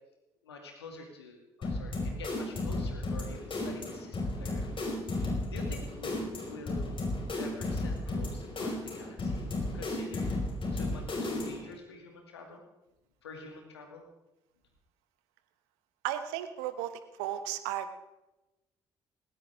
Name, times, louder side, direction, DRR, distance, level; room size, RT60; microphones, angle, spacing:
voice 1, 0.4-6.9 7.4-9.5 9.7-12.6 13.2-14.0, left 3 dB, 85° left, 2 dB, 2.4 m, -47 dB
sound 1, 1.6-11.7, left 2 dB, 40° left, 5.2 m, -34 dB
voice 2, 16.0-16.9 17.2-18.0, right 11 dB, 75° right, 10 dB, 1.1 m, -34 dB
19.0 x 17.5 x 3.6 m, 0.99 s
figure-of-eight pair, 45°, 13 cm